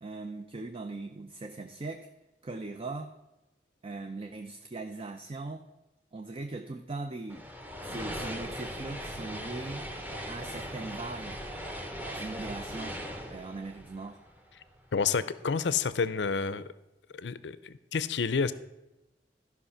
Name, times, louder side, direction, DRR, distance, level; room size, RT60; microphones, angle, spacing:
voice 1, 0.0-2.1 2.4-3.1 3.8-5.7 6.1-7.5 7.8-9.8 10.3-11.4 12.1-13.0 13.3-14.2, right 3 dB, 35° right, 6 dB, 0.5 m, -40 dB
sound 1, 7.3-14.7, equal, 10° right, 1.0 m, -39 dB
voice 2, 14.9-16.6 17.1-18.5, left 5 dB, 85° left, 15 dB, 0.5 m, -29 dB
12.5 x 5.6 x 5.7 m, 0.99 s
head